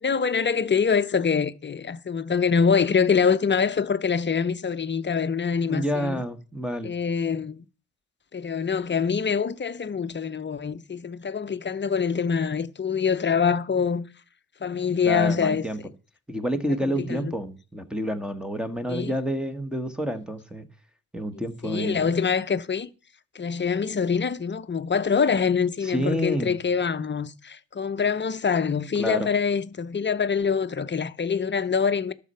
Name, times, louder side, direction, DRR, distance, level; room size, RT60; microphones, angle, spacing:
voice 1, 0.0-6.2 6.8-7.6 8.3-14.0 14.6-15.6 16.7-17.3 18.9-19.1 21.6-22.9 23.3-32.1, left 6 dB, 30° left, 0.8 m, -25 dB
voice 2, 5.7-6.9 15.0-15.8 16.3-20.7 21.1-22.1 25.8-26.6 29.0-29.3, equal, ahead, 1.4 m, -29 dB
12.0 x 6.8 x 5.5 m
cardioid pair, 100°, 35 cm